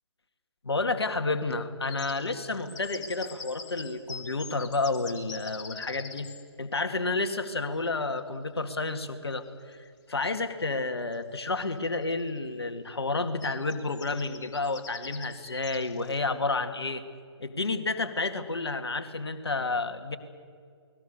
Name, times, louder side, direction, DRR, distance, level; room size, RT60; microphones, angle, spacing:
voice 1, 0.6-6.3 6.6-17.0 17.4-20.2, left 3 dB, 65° left, 7 dB, 2.3 m, -30 dB
sound 1, 1.8-6.4 8.9-9.0 9.3-9.4 10.7-10.8 11.1-11.6 12.1-12.3 13.4-16.2, left 5 dB, 45° left, 3.4 m, -44 dB
29.0 x 20.5 x 6.8 m, 2.2 s
figure-of-eight pair, 140°, 14 cm